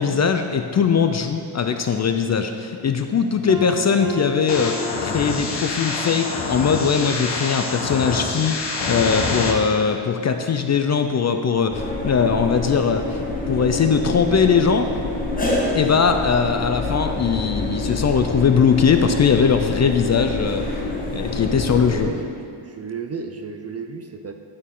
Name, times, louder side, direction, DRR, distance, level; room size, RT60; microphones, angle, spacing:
voice 1, 0.0-13.0 13.5-14.9 15.7-20.7 21.1-22.1, left 6 dB, 35° left, 7 dB, 0.4 m, -20 dB
Piano, 3.5-6.0, left 2 dB, 70° right, 2.0 m, -34 dB
sound 1, 4.5-9.5, left 3 dB, 60° left, 1.2 m, -26 dB
sound 2, 11.7-22.0, left 2 dB, 15° left, 1.4 m, -27 dB
voice 2, 21.7-24.3, right 5 dB, 35° right, 6 dB, 0.4 m, -33 dB
10.5 x 6.4 x 3.7 m, 2.4 s
wide cardioid pair, 125°, 48 cm